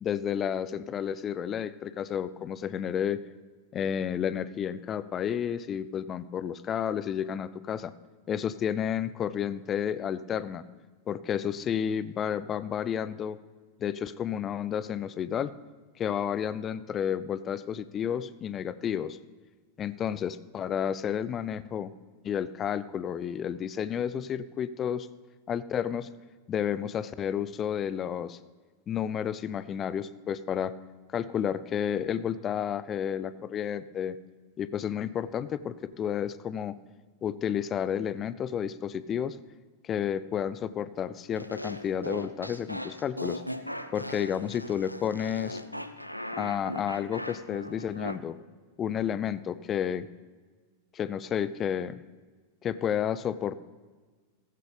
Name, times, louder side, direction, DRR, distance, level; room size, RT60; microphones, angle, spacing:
voice 1, 0.0-3.2 3.7-7.9 8.3-10.6 11.1-13.4 13.8-15.5 16.0-19.2 19.8-21.9 22.2-25.1 25.5-26.1 26.5-28.4 28.9-30.7 31.1-34.2 34.6-36.8 37.2-39.4 39.8-43.4 43.9-45.6 46.4-48.4 48.8-50.1 50.9-52.0 52.6-53.5, left 9 dB, 25° left, 16 dB, 0.5 m, -31 dB
sound 1, 41.3-48.2, left 1 dB, 90° left, 0.5 m, -38 dB
15.5 x 15.0 x 3.4 m, 1.4 s
figure-of-eight pair, 90°, 0 cm